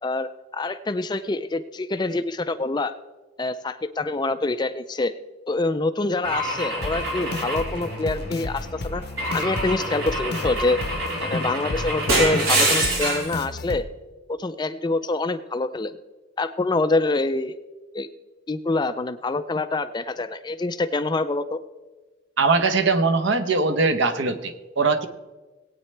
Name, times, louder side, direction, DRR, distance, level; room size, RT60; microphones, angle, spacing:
voice 1, 0.0-2.9 3.4-5.1 5.5-9.0 9.3-10.8 11.2-13.9 14.4-15.9 16.4-17.5 17.9-18.1 18.5-21.6, left 2 dB, 20° left, 11 dB, 0.3 m, -26 dB
Car / Engine / Glass, 6.2-8.5 9.2-13.3, right 1 dB, 80° right, 4.2 m, -26 dB
sound 1, 6.8-13.8, left 2 dB, 50° left, 0.7 m, -32 dB
voice 2, 22.4-25.1, right 4 dB, 60° right, 8 dB, 0.8 m, -21 dB
19.5 x 8.9 x 3.3 m, 1.2 s
head